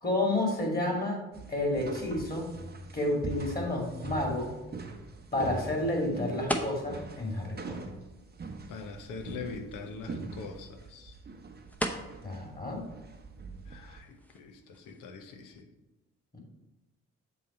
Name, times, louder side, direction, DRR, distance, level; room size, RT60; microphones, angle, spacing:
voice 1, 0.0-2.5 2.9-4.5 5.3-7.8 12.2-12.9 16.3-16.4, left 1 dB, 25° left, 0 dB, 2.4 m, -30 dB
sound 1, 1.3-14.0, right 3 dB, 25° right, 0.9 m, -43 dB
sound 2, 2.4-15.6, equal, 5° left, 0.8 m, -43 dB
voice 2, 8.7-11.1 13.7-15.7, left 4 dB, 60° left, 5 dB, 0.9 m, -43 dB
7.3 x 3.9 x 4.4 m, 1.0 s
hypercardioid pair, 40°, 36 cm